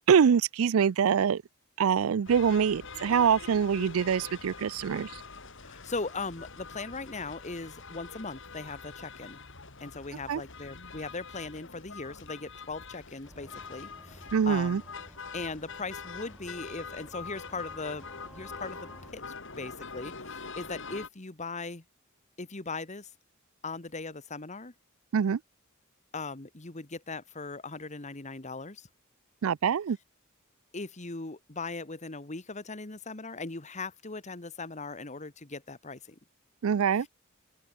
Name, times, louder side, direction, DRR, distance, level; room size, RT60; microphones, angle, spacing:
voice 1, 0.1-1.4 1.8-5.1 10.3-10.4 14.3-14.8 25.1-25.4 29.4-30.0 36.6-37.1, right 7 dB, 75° right, 0.4 m, -24 dB
sound 1, 2.3-21.1, left 4 dB, 60° left, 5.4 m, -44 dB
voice 2, 5.6-9.4 9.8-14.8 15.3-19.2 19.6-21.8 22.4-23.1 23.6-24.7 26.1-28.9 30.7-36.2, left 3 dB, 35° left, 1.6 m, -39 dB
sound 2, 13.2-19.1, equal, 5° right, 3.6 m, -53 dB
open air
head